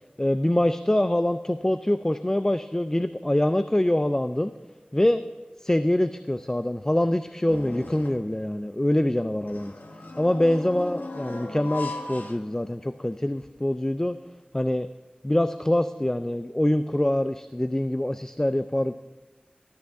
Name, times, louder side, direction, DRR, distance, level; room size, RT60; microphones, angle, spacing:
voice 1, 0.2-4.5 4.9-5.2 5.6-9.7 10.2-14.2 14.5-14.9 15.2-18.9, left 1 dB, 15° left, 11 dB, 0.4 m, -24 dB
sound 1, 7.5-8.3 9.4-13.0 13.4-13.5 14.6-14.7, left 2 dB, 85° left, 1.1 m, -37 dB
13.5 x 12.5 x 3.5 m, 1.2 s
wide cardioid pair, 45°, 3 cm